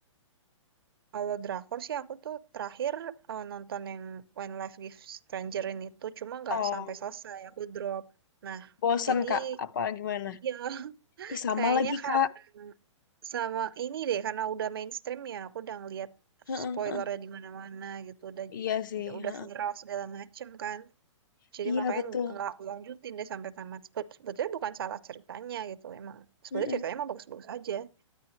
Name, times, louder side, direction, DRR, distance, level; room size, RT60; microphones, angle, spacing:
voice 1, 1.1-8.0 8.4-8.7 9.1-9.6 10.4-12.2 12.6-12.7 13.2-16.1 16.5-18.5 19.1-20.9 21.5-26.3 26.5-27.9, right 9 dB, 50° right, 0.5 m, -36 dB
voice 2, 6.5-6.9 8.8-10.4 11.3-12.3 16.5-17.0 18.5-19.5 21.7-22.3 26.5-26.8, left 7 dB, 40° left, 0.6 m, -30 dB
9.7 x 9.7 x 3.0 m
hypercardioid pair, 175°, 16 cm